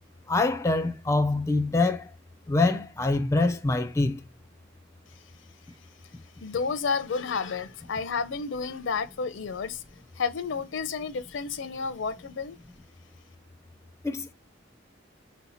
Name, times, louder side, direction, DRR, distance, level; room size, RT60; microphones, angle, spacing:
voice 1, 0.3-2.1 2.5-4.2 14.0-14.3, left 2 dB, 15° left, 0.4 m, -25 dB
voice 2, 6.4-9.8 10.2-12.6, left 5 dB, 70° left, 0.5 m, -31 dB
4.3 x 2.8 x 4.2 m
head